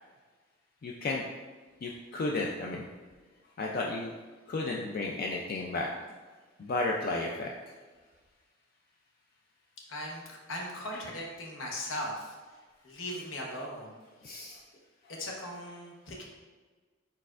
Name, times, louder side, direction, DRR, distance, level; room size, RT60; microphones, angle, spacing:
voice 1, 0.8-1.2 1.8-2.9 3.6-4.1 4.5-5.9 6.6-7.5 14.2-14.6, left 2 dB, 50° left, -1 dB, 0.3 m, -33 dB
voice 2, 9.9-12.3 12.8-13.9 15.2-16.2, left 1 dB, 90° left, -1 dB, 0.9 m, -38 dB
4.5 x 4.2 x 2.4 m, 1.4 s
head